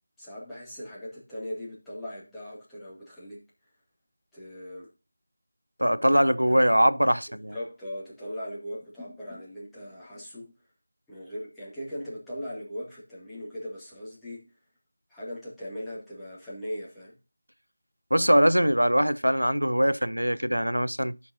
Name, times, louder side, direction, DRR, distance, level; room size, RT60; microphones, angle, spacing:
voice 1, 0.2-3.4 4.3-4.9 6.5-6.6 7.3-10.5 11.1-14.4 15.1-17.1, equal, 5° left, 2.3 m, -39 dB
voice 2, 5.8-7.6 18.1-21.2, equal, 90° right, 0.5 m, -22 dB
14.5 x 5.9 x 2.7 m
figure-of-eight pair, 165°, 0 cm